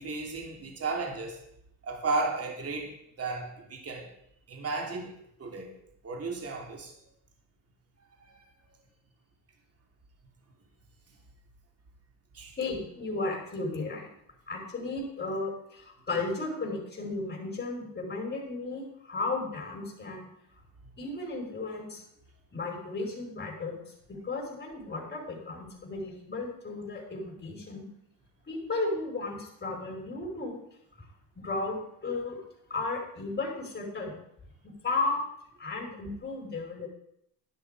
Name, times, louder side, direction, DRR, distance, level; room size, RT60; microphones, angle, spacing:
voice 1, 0.0-1.4 1.8-4.1 4.5-5.1 5.4-5.7 6.0-7.0 8.2-8.4 12.3-12.6, right 3 dB, 40° right, 1 dB, 3.1 m, -34 dB
voice 2, 12.6-14.1 14.5-20.3 21.0-22.0 22.5-23.8 24.1-27.9 28.5-30.6 31.0-31.1 31.3-32.4 32.7-34.2 34.6-35.2 35.6-36.9, left 3 dB, 25° left, -1 dB, 5.1 m, -34 dB
11.5 x 10.5 x 5.0 m, 0.76 s
cardioid pair, 95°, 37 cm